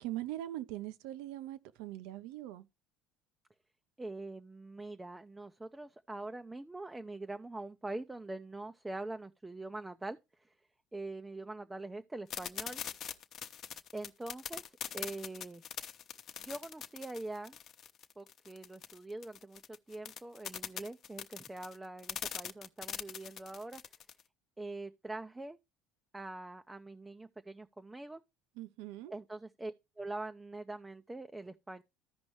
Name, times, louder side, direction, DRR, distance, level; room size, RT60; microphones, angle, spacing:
voice 1, 0.0-2.6 28.6-29.1, right 14 dB, 75° right, 0.8 m, -41 dB
voice 2, 4.0-10.5 10.9-12.8 13.9-15.6 16.4-17.6 18.2-19.6 19.9-23.8 24.6-25.6 26.1-28.2 29.1-31.8, right 2 dB, 10° right, 0.5 m, -44 dB
sound 1, 12.3-24.2, left 9 dB, 50° left, 0.9 m, -42 dB
14.0 x 5.2 x 3.1 m
supercardioid pair, 95°, 0 cm